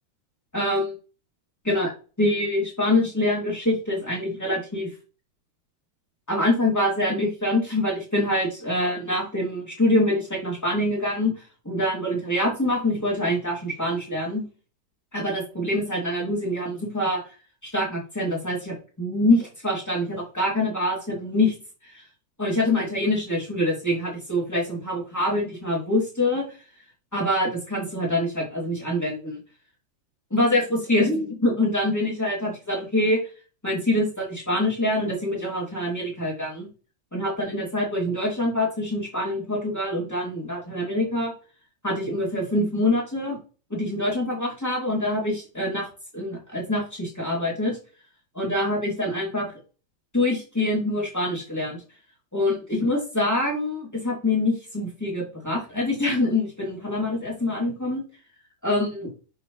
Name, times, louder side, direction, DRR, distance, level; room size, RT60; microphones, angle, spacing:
voice 1, 0.5-0.9 1.6-1.9 2.2-4.9 6.3-11.3 11.6-14.4 15.1-17.2 17.7-19.4 19.6-21.5 22.4-26.4 27.1-29.4 30.3-33.2 33.6-36.7 37.1-41.3 41.8-43.4 43.7-45.9 46.1-47.8 48.3-49.5 50.1-51.8 52.3-58.0 58.6-59.1, left 1 dB, 15° left, -3 dB, 0.6 m, -25 dB
6.3 x 6.3 x 3.1 m, 0.35 s
omnidirectional pair, 5.0 m